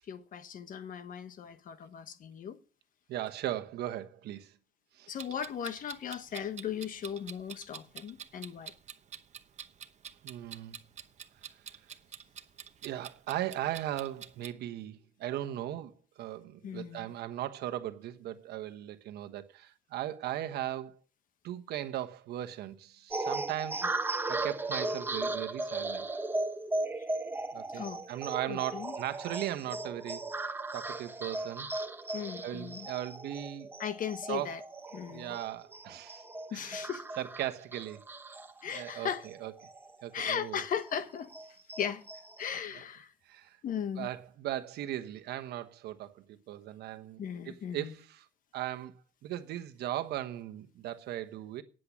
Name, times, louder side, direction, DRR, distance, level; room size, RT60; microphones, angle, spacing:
voice 1, 0.1-2.6 5.1-8.7 16.6-17.1 27.7-28.1 28.5-28.9 32.1-32.9 33.8-34.6 34.9-35.3 36.5-37.0 38.6-39.3 40.1-41.3 41.8-42.0 42.4-43.1 43.6-44.1 47.2-47.9, left 8 dB, 55° left, 1.2 m, -37 dB
voice 2, 3.1-4.5 4.9-5.1 10.2-10.8 12.8-21.0 21.4-23.9 24.3-26.1 27.5-31.7 32.4-33.7 34.3-34.6 35.1-36.2 36.5-36.9 37.2-38.0 38.7-39.5 40.0-40.6 43.3-43.6 44.0-48.3 48.5-51.6, right 13 dB, 75° right, 1.2 m, -38 dB
Clock, 5.2-14.5, right 8 dB, 45° right, 0.9 m, -47 dB
sound 1, 23.1-40.0 40.4-40.5 40.8-42.5, right 2 dB, 10° right, 0.9 m, -37 dB
10.0 x 7.7 x 8.6 m
cardioid pair, 110°, 17 cm